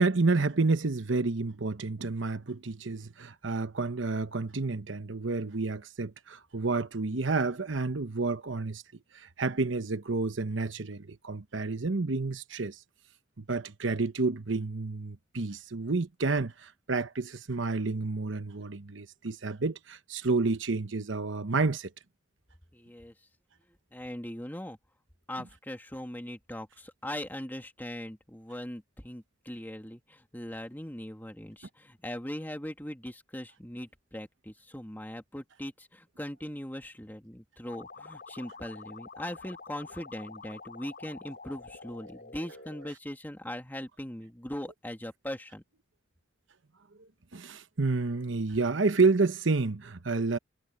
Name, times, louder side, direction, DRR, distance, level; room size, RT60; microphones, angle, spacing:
voice 1, 0.0-8.8 9.1-12.8 13.4-21.9 47.0-50.4, right 3 dB, 75° right, 1.0 m, -29 dB
voice 2, 22.7-23.1 23.9-24.8 25.3-45.6, left 1 dB, 10° left, 2.1 m, -40 dB
sound 1, 37.7-42.9, left 4 dB, 55° left, 5.0 m, -47 dB
head